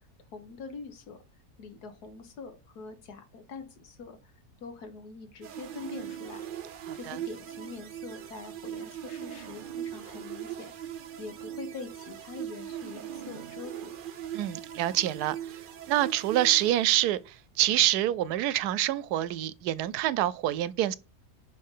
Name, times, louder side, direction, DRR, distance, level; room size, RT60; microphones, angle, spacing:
voice 1, 0.3-1.2 1.6-4.3 4.6-6.4 6.9-10.7 11.2-14.0, left 4 dB, 85° left, 1.7 m, -44 dB
sound 1, 5.4-17.3, right 10 dB, 65° right, 0.5 m, -40 dB
voice 2, 14.3-15.4 15.9-17.2 17.6-20.9, right 13 dB, 90° right, 1.1 m, -26 dB
5.4 x 5.4 x 5.4 m
omnidirectional pair, 1.6 m